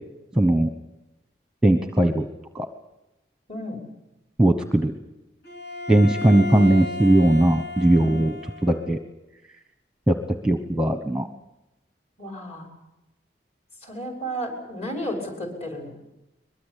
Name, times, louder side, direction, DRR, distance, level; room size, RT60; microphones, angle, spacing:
voice 1, 0.4-0.7 1.6-2.2 2.5-2.7 4.4-4.9 5.9-8.3 8.6-9.0 10.1-10.2 10.4-11.3, right 1 dB, 5° right, 8 dB, 1.1 m, -19 dB
voice 2, 3.5-3.8 8.0-8.3 12.2-12.7 13.8-16.0, equal, 35° left, 2 dB, 6.1 m, -33 dB
Bowed string instrument, 5.4-8.9, left 2 dB, 65° left, 3.8 m, -34 dB
22.5 x 22.0 x 8.4 m, 0.93 s
head